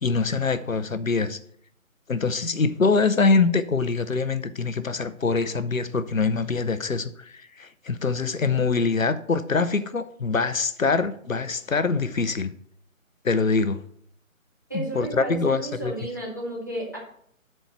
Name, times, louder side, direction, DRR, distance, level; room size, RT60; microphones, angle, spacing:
voice 1, 0.0-1.4 2.1-12.5 13.2-13.8 14.7-15.9, left 4 dB, 70° left, 12 dB, 0.7 m, -24 dB
voice 2, 14.7-17.0, right 1 dB, 15° right, -3 dB, 0.9 m, -33 dB
7.7 x 4.5 x 6.7 m, 0.66 s
figure-of-eight pair, 155°, 42 cm